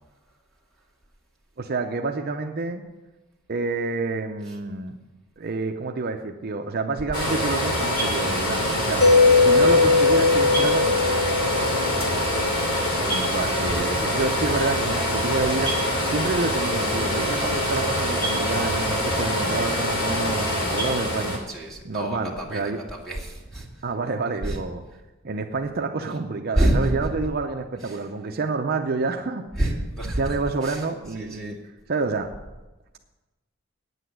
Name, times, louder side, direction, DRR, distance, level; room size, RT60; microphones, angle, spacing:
voice 1, 1.6-2.8 3.5-5.0 5.4-9.0 9.4-11.0 13.0-21.4 21.8-22.8 23.8-24.8 25.2-29.4 30.0-31.6 31.9-32.3, right 3 dB, 45° right, 4 dB, 0.6 m, -28 dB
sound 1, 7.1-21.4, equal, 75° left, 2.7 m, -25 dB
Mallet percussion, 9.0-12.8, left 4 dB, 45° left, 1.5 m, -19 dB
voice 2, 11.5-11.8 17.5-17.6 21.5-23.7 24.4-24.6 26.6-27.1 27.8-28.0 29.6-30.4 30.6-30.8 31.1-31.6, right 1 dB, ahead, -3 dB, 2.4 m, -27 dB
9.3 x 8.0 x 7.9 m, 1.1 s
head